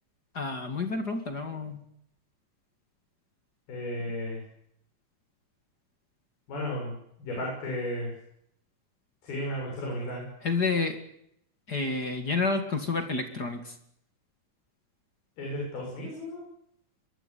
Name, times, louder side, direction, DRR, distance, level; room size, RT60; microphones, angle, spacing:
voice 1, 0.3-1.8 10.4-11.0 11.7-13.7, left 3 dB, 30° left, 6 dB, 2.3 m, -29 dB
voice 2, 3.7-4.4 6.5-8.1 9.2-10.2 15.4-16.4, left 1 dB, 85° left, -2 dB, 9.2 m, -34 dB
23.5 x 22.5 x 8.5 m, 0.74 s
omnidirectional pair, 4.2 m